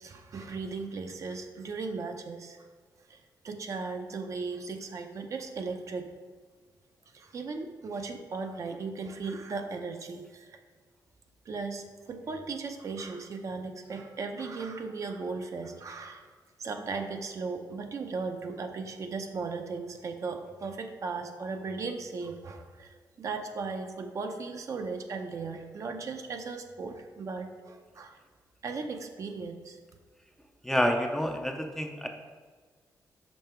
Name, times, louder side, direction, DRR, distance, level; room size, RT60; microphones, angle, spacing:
voice 1, 0.0-2.6 3.1-3.2 3.4-6.1 7.1-10.6 11.5-16.3 16.6-28.2 28.6-29.8, right 4 dB, 45° right, 5 dB, 0.6 m, -37 dB
voice 2, 30.6-32.1, equal, 5° left, 4 dB, 0.4 m, -28 dB
5.7 x 5.3 x 4.4 m, 1.6 s
wide cardioid pair, 155°, 7 cm